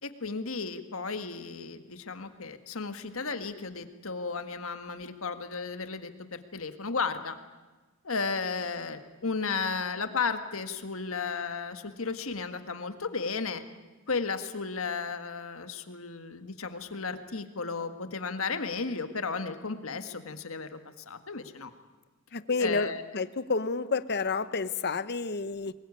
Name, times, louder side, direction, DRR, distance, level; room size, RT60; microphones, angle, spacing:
voice 1, 0.0-7.4 8.0-13.6 14.1-21.7 22.6-23.0, left 4 dB, 70° left, 9 dB, 1.7 m, -34 dB
voice 2, 22.3-25.7, left 4 dB, 50° left, 14 dB, 0.9 m, -30 dB
23.0 x 21.0 x 9.7 m, 1.3 s
head